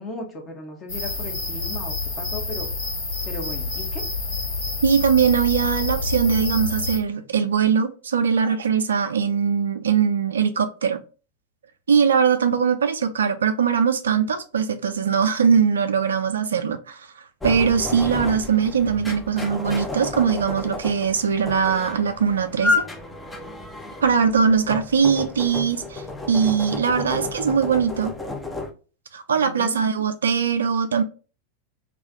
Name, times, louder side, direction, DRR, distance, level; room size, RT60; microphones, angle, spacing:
voice 1, 0.0-2.7 3.2-4.0 29.3-29.8, left 2 dB, 25° left, 0.9 m, -36 dB
sound 1, 0.9-7.0, left 3 dB, 70° left, 1.1 m, -28 dB
voice 2, 4.8-11.0 11.9-17.1 17.4-22.9 24.0-28.1 29.1-31.0, right 6 dB, 70° right, 0.4 m, -21 dB
sound 2, 17.4-28.7, left 2 dB, 10° left, 0.5 m, -31 dB
2.4 x 2.3 x 3.8 m
figure-of-eight pair, 90°, 0 cm